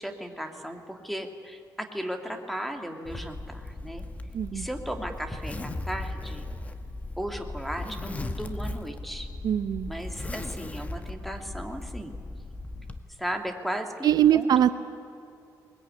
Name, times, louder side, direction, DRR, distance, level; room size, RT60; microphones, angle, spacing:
voice 1, 0.0-1.6 1.9-4.0 4.5-6.5 7.2-9.3 9.9-12.2 13.2-14.7, equal, ahead, 5 dB, 2.3 m, -36 dB
Zipper (clothing), 3.1-13.0, left 2 dB, 20° left, 1.4 m, -37 dB
voice 2, 4.3-4.7 9.4-9.9 14.0-14.7, right 10 dB, 65° right, 11 dB, 0.8 m, -22 dB
21.0 x 21.0 x 9.8 m, 2.5 s
cardioid pair, 125°, 7 cm